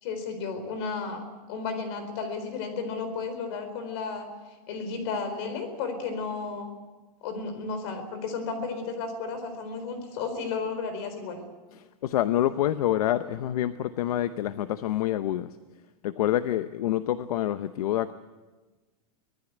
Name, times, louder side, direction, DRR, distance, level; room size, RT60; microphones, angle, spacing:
voice 1, 0.0-4.3 4.7-6.7 7.2-11.4, left 4 dB, 40° left, 9 dB, 4.1 m, -33 dB
voice 2, 11.7-15.6 16.0-18.1, left 12 dB, 65° left, 12 dB, 0.9 m, -27 dB
24.5 x 18.5 x 8.1 m, 1.2 s
supercardioid pair, 180°, 20 cm